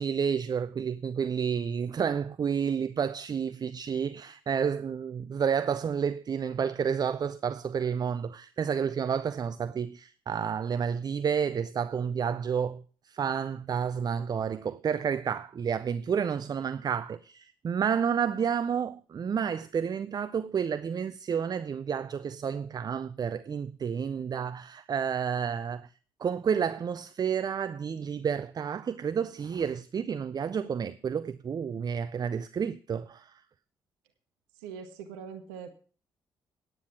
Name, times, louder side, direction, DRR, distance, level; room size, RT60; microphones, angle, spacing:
voice 1, 0.0-25.9 26.2-33.3, right 7 dB, 35° right, 0.5 m, -30 dB
voice 2, 34.5-35.7, right 6 dB, 75° right, 1.1 m, -42 dB
9.6 x 9.0 x 5.8 m
hypercardioid pair, 45°, 11 cm